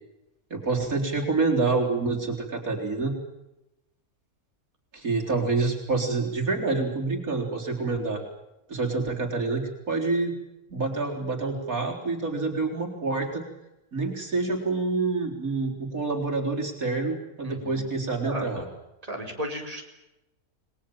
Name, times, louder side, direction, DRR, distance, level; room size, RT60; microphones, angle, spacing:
voice 1, 0.5-3.1 4.9-8.2 8.7-10.4 10.7-13.4 13.9-18.7, right 3 dB, 65° right, 0 dB, 4.5 m, -27 dB
voice 2, 17.4-17.8 18.2-18.5 19.0-19.8, right 1 dB, 25° right, 2 dB, 4.6 m, -34 dB
29.5 x 21.5 x 7.5 m, 0.93 s
omnidirectional pair, 1.6 m